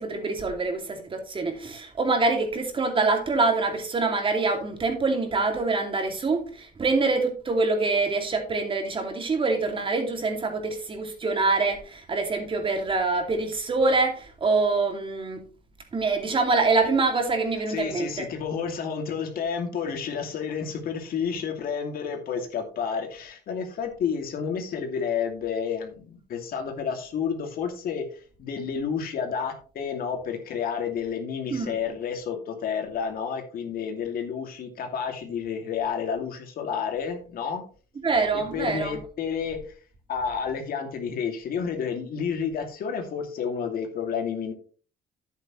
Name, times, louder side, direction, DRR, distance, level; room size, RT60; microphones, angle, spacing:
voice 1, 0.0-15.4 15.9-18.2 31.5-31.8 38.0-39.0, right 3 dB, 30° right, 2.6 m, -25 dB
voice 2, 17.7-37.6 38.3-39.6 40.1-44.5, left 6 dB, 60° left, 2.5 m, -30 dB
10.5 x 9.0 x 3.2 m
cardioid pair, 110°, 17 cm